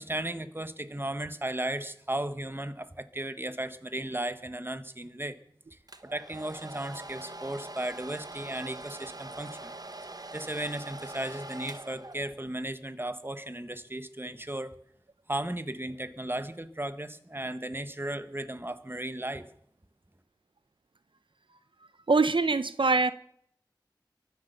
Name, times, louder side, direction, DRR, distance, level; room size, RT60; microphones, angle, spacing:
voice 1, 0.0-5.4 5.7-9.7 10.3-14.8 15.3-19.5, right 1 dB, 25° right, 1.3 m, -35 dB
Domestic sounds home sounds, 5.9-12.6, right 2 dB, 50° right, 1.1 m, -43 dB
voice 2, 22.1-23.1, right 3 dB, 90° right, 0.7 m, -23 dB
23.5 x 8.2 x 6.7 m
wide cardioid pair, 40°, 8 cm